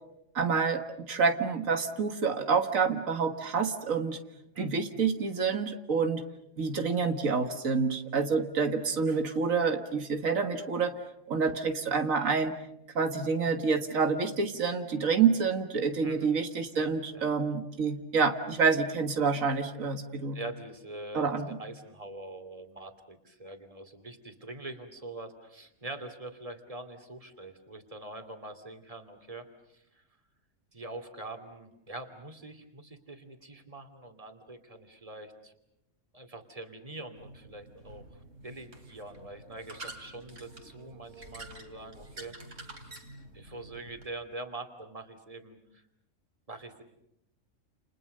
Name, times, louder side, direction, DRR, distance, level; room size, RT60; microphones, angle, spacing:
voice 1, 0.4-0.8 1.1-4.2 4.6-6.2 6.6-10.9 11.3-12.6 13.0-20.4 21.1-21.5, right 5 dB, 90° right, 7 dB, 2.0 m, -28 dB
voice 2, 16.7-17.3 20.3-30.0 30.7-35.5 36.1-38.0 38.4-42.4 43.3-45.8 46.5-46.8, right 2 dB, 25° right, 8 dB, 2.8 m, -44 dB
sound 1, 37.2-44.1, right 2 dB, 65° right, 3.6 m, -48 dB
30.0 x 29.5 x 6.7 m, 0.81 s
omnidirectional pair, 1.4 m